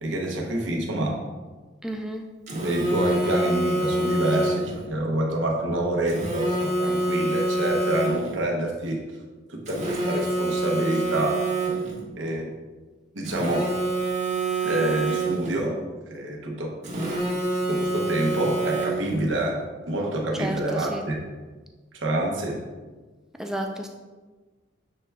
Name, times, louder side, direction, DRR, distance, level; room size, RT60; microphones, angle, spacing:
voice 1, 0.0-1.2 2.6-9.0 9.5-11.4 12.2-12.5 13.1-13.7 14.6-15.8 16.1-16.8 17.3-17.4 17.7-19.6 19.9-21.2 21.9-22.6, right 1 dB, 75° right, -1 dB, 0.8 m, -27 dB
voice 2, 1.8-2.3 20.3-21.1 23.4-23.9, right 1 dB, 5° right, 3 dB, 0.3 m, -31 dB
Telephone, 2.5-4.8 6.1-8.4 9.7-12.0 13.2-15.6 16.8-19.2, right 2 dB, 40° right, 0.8 m, -26 dB
6.6 x 3.4 x 2.2 m, 1.3 s
head